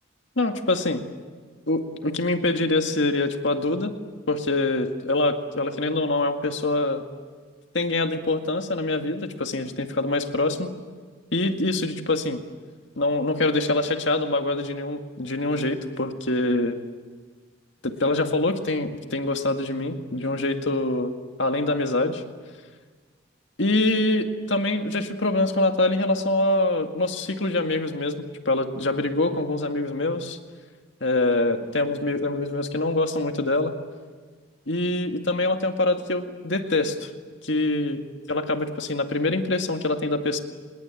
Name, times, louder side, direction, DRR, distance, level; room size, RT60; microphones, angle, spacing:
voice 1, 0.4-1.1 1.7-3.9 4.3-7.0 7.7-10.7 11.3-12.4 13.0-16.8 17.8-21.1 21.4-22.2 23.6-30.4 31.0-33.7 34.7-37.1 37.4-38.0 38.3-40.4, left 2 dB, 65° left, 5 dB, 2.0 m, -24 dB
26.0 x 21.5 x 9.1 m, 1.5 s
head